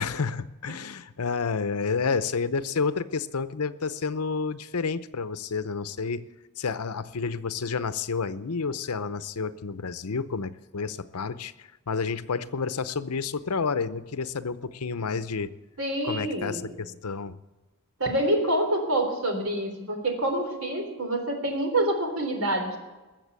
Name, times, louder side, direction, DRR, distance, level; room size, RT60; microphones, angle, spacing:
voice 1, 0.0-6.3 6.6-15.5 16.0-17.4, left 5 dB, 85° left, 14 dB, 0.7 m, -30 dB
voice 2, 15.8-16.8 18.0-22.8, right 1 dB, 70° right, 4 dB, 3.6 m, -27 dB
20.5 x 7.3 x 8.3 m, 1.2 s
head